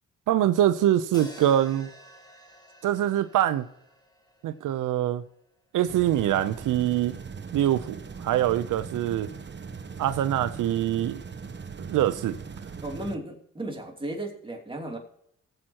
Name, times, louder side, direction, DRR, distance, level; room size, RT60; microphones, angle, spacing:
voice 1, 0.3-1.9 2.8-3.6 4.4-5.2 5.7-7.1 7.5-9.3 10.0-11.2 11.8-12.4, right 12 dB, 85° right, 0.6 m, -24 dB
sound 1, 1.1-5.4, equal, 15° left, 2.3 m, -50 dB
sound 2, 5.8-13.2, right 5 dB, 35° right, 1.0 m, -40 dB
voice 2, 12.8-15.0, right 1 dB, 15° right, 2.8 m, -35 dB
18.5 x 7.8 x 2.9 m
cardioid pair, 65°, 31 cm